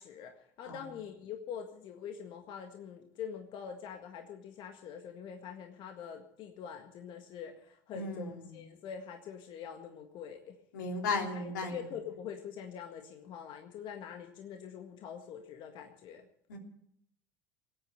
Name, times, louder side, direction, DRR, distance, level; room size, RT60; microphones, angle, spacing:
voice 1, 0.0-10.5 11.1-16.3, left 7 dB, 55° left, 4 dB, 1.8 m, -44 dB
voice 2, 7.9-8.3 10.7-11.8 16.5-16.6, left 3 dB, 85° left, 2 dB, 3.1 m, -34 dB
19.0 x 8.9 x 7.7 m, 0.71 s
hypercardioid pair, 85°, 10 cm